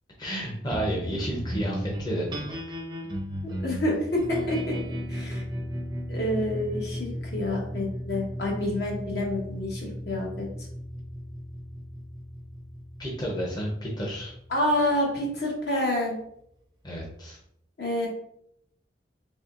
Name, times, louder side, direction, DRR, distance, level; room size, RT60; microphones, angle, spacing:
voice 1, 0.2-2.6 13.0-14.3 16.8-17.4, equal, 25° left, -2 dB, 0.6 m, -31 dB
sound 1, 0.7-15.4, equal, 25° right, 0.5 m, -36 dB
voice 2, 3.6-4.7 5.1-5.4 6.1-10.5 14.5-16.1 17.8-18.1, left 1 dB, 65° left, -2 dB, 1.1 m, -28 dB
4.2 x 3.1 x 2.4 m, 0.74 s
head